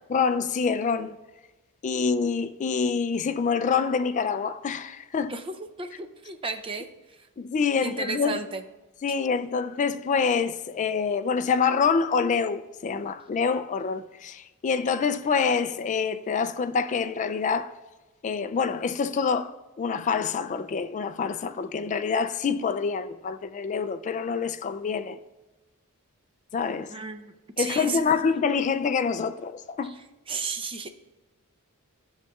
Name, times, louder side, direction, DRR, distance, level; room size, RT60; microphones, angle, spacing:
voice 1, 0.1-1.2 1.8-5.3 7.4-8.4 9.0-17.7 18.2-25.2 26.5-26.9 27.6-30.0, left 5 dB, 35° left, 0.3 m, -26 dB
voice 2, 5.3-6.9 7.8-8.6 26.9-28.0 30.3-30.9, right 4 dB, 25° right, 0.5 m, -33 dB
11.0 x 6.4 x 2.3 m
head